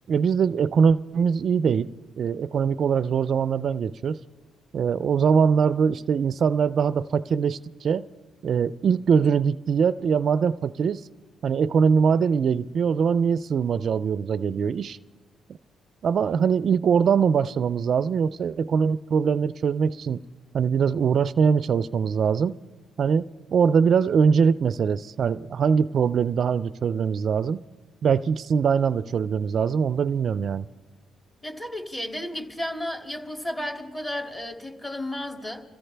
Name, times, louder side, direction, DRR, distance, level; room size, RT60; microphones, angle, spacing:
voice 1, 0.1-1.9 2.2-4.2 4.7-8.1 8.4-11.1 11.4-15.0 16.0-20.2 20.5-22.6 23.0-27.6 28.0-30.6, right 6 dB, 55° right, 15 dB, 0.4 m, -22 dB
voice 2, 31.4-35.6, left 1 dB, 20° left, 3 dB, 2.4 m, -33 dB
28.5 x 15.0 x 3.4 m, 1.3 s
cardioid pair, 90°, 0 cm